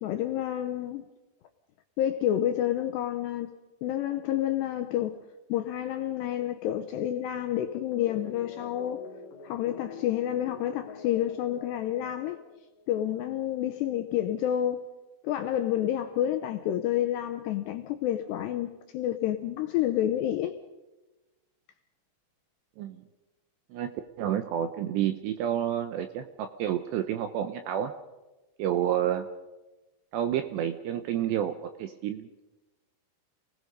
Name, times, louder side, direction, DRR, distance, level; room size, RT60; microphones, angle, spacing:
voice 1, 0.0-1.0 2.0-3.5 3.8-5.2 5.5-9.0 9.4-12.4 12.9-14.8 15.2-20.6, left 11 dB, 80° left, 2.5 m, -29 dB
sound 1, 7.7-12.9, left 6 dB, 60° left, 2.4 m, -46 dB
voice 2, 23.7-27.9 28.6-29.3 30.1-31.5 31.8-32.4, right 10 dB, 80° right, 2.6 m, -29 dB
28.5 x 19.5 x 5.3 m
omnidirectional pair, 5.9 m